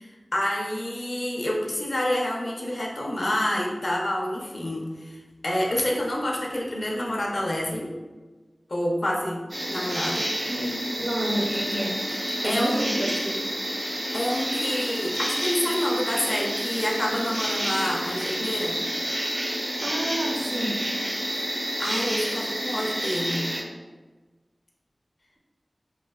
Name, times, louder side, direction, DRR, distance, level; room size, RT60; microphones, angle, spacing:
voice 1, 0.0-7.9 8.7-9.4 9.7-10.3 12.4-13.0 14.1-18.7 21.3-21.5 21.8-23.5, left 1 dB, 60° left, -2 dB, 0.6 m, -28 dB
sound 1, 9.5-23.6, equal, 80° right, 0.8 m, -29 dB
voice 2, 10.5-12.0 12.4-13.6 19.8-20.8, right 1 dB, 60° right, 1 dB, 0.5 m, -29 dB
3.1 x 2.7 x 2.3 m, 1.3 s
wide cardioid pair, 65°, 0 cm